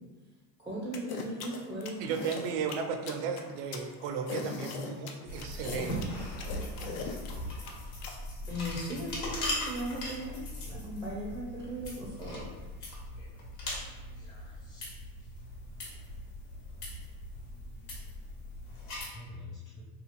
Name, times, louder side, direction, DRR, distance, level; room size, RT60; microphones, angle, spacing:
voice 1, 0.6-2.2 8.5-10.4 10.7-12.5, equal, 10° right, 0.4 m, -37 dB
sound 1, 0.9-8.1, left 5 dB, 55° left, 0.5 m, -39 dB
voice 2, 2.0-6.1, right 6 dB, 75° right, 0.6 m, -35 dB
sound 2, 5.3-19.1, left 1 dB, 75° left, 1.1 m, -40 dB
voice 3, 13.1-13.8 14.2-14.9 19.1-19.8, left 3 dB, 40° left, 1.1 m, -49 dB
2.9 x 2.4 x 2.5 m
supercardioid pair, 105°, 45 cm